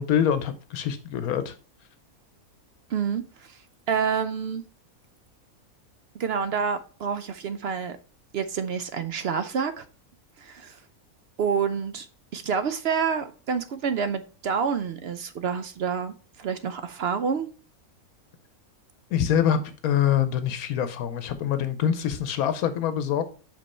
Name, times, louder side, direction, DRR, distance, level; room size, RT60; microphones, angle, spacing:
voice 1, 0.0-1.5 19.1-23.2, left 9 dB, 85° left, 10 dB, 1.1 m, -25 dB
voice 2, 2.9-3.6 3.9-4.6 6.1-8.0 8.3-9.8 10.4-10.8 11.4-12.1 12.3-17.5, right 6 dB, 65° right, 11 dB, 0.6 m, -28 dB
5.4 x 5.2 x 4.2 m, 0.39 s
omnidirectional pair, 1.5 m